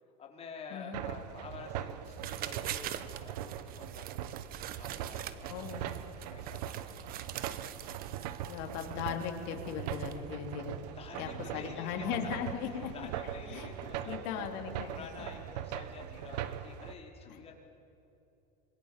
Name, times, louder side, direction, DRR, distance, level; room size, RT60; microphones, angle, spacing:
voice 1, 0.2-3.4 3.8-4.4 4.8-6.0 6.3-7.2 11.0-12.1 12.9-14.5 14.9-17.5, left 5 dB, 30° left, 0 dB, 4.8 m, -49 dB
voice 2, 0.7-1.0 5.5-6.0 8.5-10.8 11.2-13.7 14.1-14.9 17.3-17.4, left 8 dB, 65° left, 3 dB, 3.5 m, -38 dB
sound 1, 0.9-17.0, right 10 dB, 80° right, 1.3 m, -41 dB
sound 2, 2.1-10.3, right 11 dB, 45° right, 1.2 m, -44 dB
26.0 x 22.0 x 7.5 m, 2.9 s
supercardioid pair, 115°, 21 cm